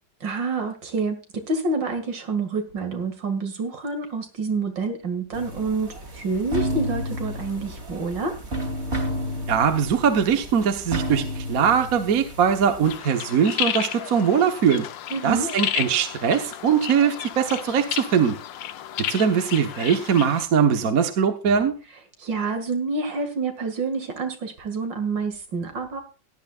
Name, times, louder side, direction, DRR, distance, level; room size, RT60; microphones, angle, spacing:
voice 1, 0.2-8.4 15.1-15.5 22.2-26.0, right 3 dB, 75° right, 7 dB, 2.8 m, -28 dB
sound 1, 5.3-13.0, equal, 35° right, 3.0 m, -31 dB
voice 2, 9.5-14.9 15.2-18.4 19.1-21.7, right 7 dB, 50° right, 7 dB, 1.5 m, -21 dB
sound 2, 12.8-20.5, left 10 dB, 80° left, 1.5 m, -32 dB
17.0 x 11.0 x 2.4 m, 0.34 s
omnidirectional pair, 2.0 m